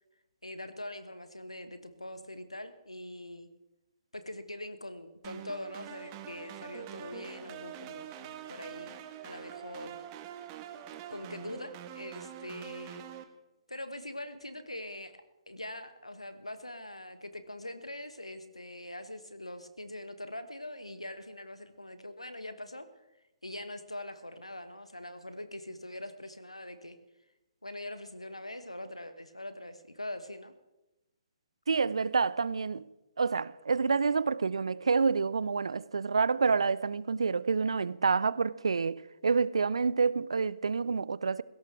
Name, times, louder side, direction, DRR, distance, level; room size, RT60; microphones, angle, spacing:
voice 1, 0.4-3.5 4.1-10.0 11.1-13.0 13.7-22.9 23.4-27.0 27.6-30.5, left 1 dB, 85° left, 1.5 m, -43 dB
sound 1, 5.2-13.2, right 10 dB, 30° right, 1.4 m, -45 dB
voice 2, 31.7-32.8 33.2-41.4, right 5 dB, 70° right, 0.6 m, -28 dB
20.0 x 17.0 x 3.4 m
figure-of-eight pair, 130°, 3 cm